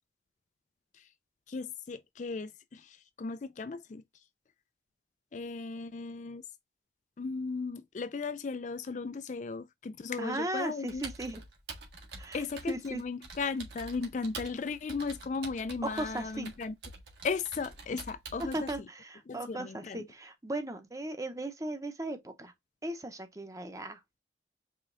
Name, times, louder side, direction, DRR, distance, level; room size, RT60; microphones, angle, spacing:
voice 1, 1.5-4.0 5.3-6.4 7.2-11.0 12.3-16.7 17.2-18.7 19.3-20.0, left 4 dB, 40° left, 0.4 m, -36 dB
voice 2, 10.2-11.4 12.2-13.0 15.8-16.5 18.5-22.5 22.8-24.2, right 1 dB, 20° right, 0.8 m, -37 dB
Computer keyboard, 10.9-18.8, right 3 dB, 70° right, 1.8 m, -47 dB
5.0 x 3.5 x 2.5 m
head